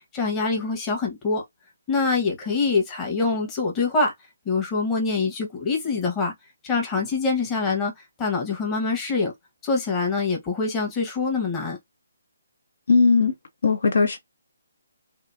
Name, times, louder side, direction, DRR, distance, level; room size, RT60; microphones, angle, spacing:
voice 1, 0.0-1.4 1.9-4.1 4.4-6.3 6.6-7.9 8.2-9.3 9.6-11.8, left 4 dB, 15° left, 1.0 m, -24 dB
voice 2, 12.9-13.3 13.6-14.2, left 4 dB, 65° left, 0.6 m, -18 dB
2.8 x 2.5 x 2.4 m
figure-of-eight pair, 150°, 0 cm